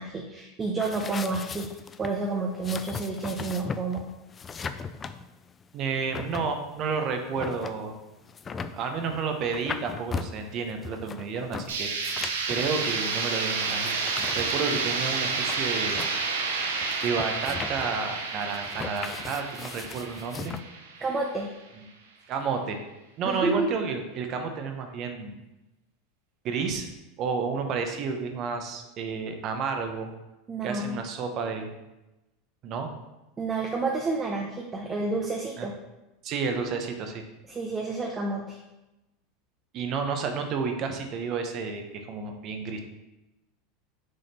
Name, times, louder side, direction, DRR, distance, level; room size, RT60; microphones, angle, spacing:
voice 1, 0.0-1.7 2.0-4.1 21.0-21.5 23.2-23.7 30.5-31.0 33.4-35.7 37.5-38.6, right 3 dB, 25° right, 1 dB, 0.8 m, -30 dB
sound 1, 0.8-20.6, left 5 dB, 25° left, 0.4 m, -38 dB
voice 2, 5.7-7.9 8.6-11.9 12.5-13.9 14.3-16.0 17.0-20.5 22.3-22.8 23.2-25.4 26.4-26.9 27.2-30.1 30.6-31.7 32.6-32.9 35.6-35.7 36.2-37.2 39.7-42.8, right 5 dB, 45° right, 5 dB, 1.0 m, -31 dB
sound 2, 11.7-21.5, right 4 dB, 90° right, 0.9 m, -30 dB
6.4 x 4.1 x 4.3 m, 0.99 s
supercardioid pair, 110°, 0 cm